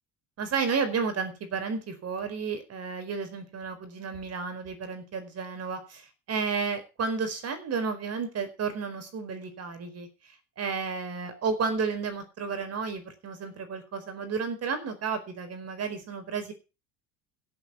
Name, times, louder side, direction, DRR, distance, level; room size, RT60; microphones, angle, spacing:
voice 1, 0.4-10.1 10.6-16.5, right 5 dB, 40° right, 9 dB, 4.7 m, -32 dB
16.5 x 7.8 x 7.1 m, 0.31 s
cardioid pair, 130°, 37 cm